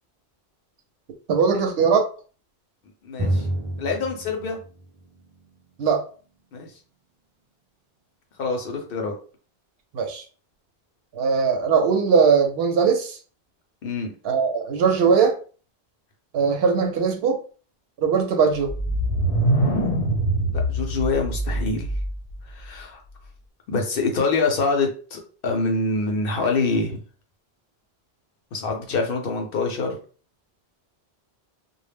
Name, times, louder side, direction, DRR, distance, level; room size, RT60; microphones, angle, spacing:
voice 1, 1.3-2.0 5.8-6.0 9.9-10.2 11.1-13.2 14.2-15.3 16.3-17.4 18.0-18.7, right 5 dB, 70° right, 5 dB, 0.8 m, -20 dB
voice 2, 3.0-3.5 3.8-4.6 6.5-6.7 8.4-9.1 13.8-14.1 20.5-21.9 22.5-23.0 23.7-27.0 28.5-29.9, left 3 dB, 65° left, 2 dB, 0.8 m, -25 dB
Drum, 3.2-6.7, right 1 dB, 45° right, 0.3 m, -30 dB
sound 1, 18.7-22.4, right 1 dB, 80° left, 1.0 m, -23 dB
2.1 x 2.0 x 3.3 m, 0.39 s
omnidirectional pair, 1.1 m